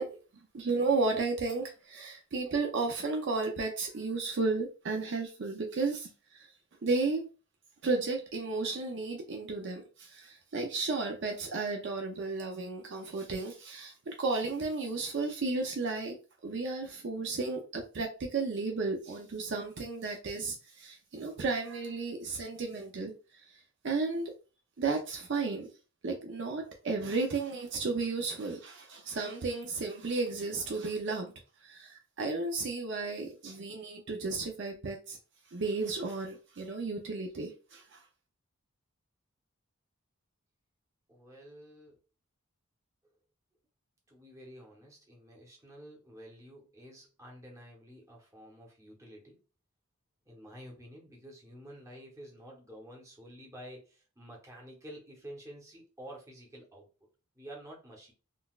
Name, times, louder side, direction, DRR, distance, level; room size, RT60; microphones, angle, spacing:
voice 1, 0.0-6.5 6.8-7.3 7.8-16.2 16.4-24.3 24.8-25.7 26.0-31.3 31.6-35.2 35.5-38.0, right 3 dB, 55° right, 2 dB, 0.5 m, -33 dB
voice 2, 41.1-42.0 44.1-49.4 50.2-56.9 57.3-58.1, equal, 15° right, -2 dB, 0.8 m, -50 dB
3.8 x 2.3 x 2.3 m, 0.33 s
head